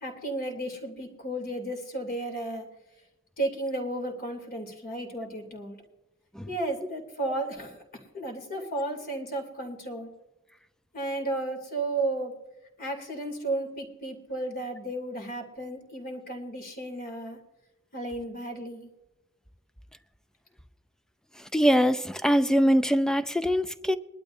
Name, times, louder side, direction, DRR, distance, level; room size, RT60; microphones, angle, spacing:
voice 1, 0.0-2.6 3.4-5.8 6.5-7.8 8.1-10.1 10.9-12.3 12.8-17.4 17.9-18.9, right 2 dB, 45° left, 2.8 m, -33 dB
voice 2, 21.5-24.0, equal, 5° left, 0.4 m, -23 dB
22.0 x 12.0 x 2.6 m
head